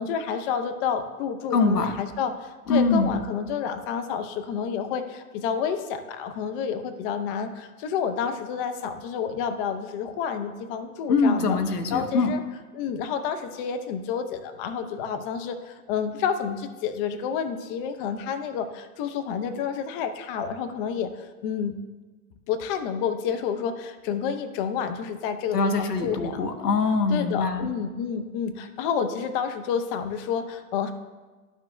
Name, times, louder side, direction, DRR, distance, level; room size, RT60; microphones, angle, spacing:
voice 1, 0.0-11.6 11.9-12.4 12.7-21.8 22.5-26.4 27.1-30.9, left 7 dB, 35° left, 8 dB, 0.7 m, -29 dB
voice 2, 1.5-2.0 2.7-3.2 11.1-12.3 25.5-27.7, left 3 dB, 85° left, 7 dB, 1.0 m, -23 dB
11.5 x 6.3 x 2.2 m, 1.3 s
hypercardioid pair, 115°, 46 cm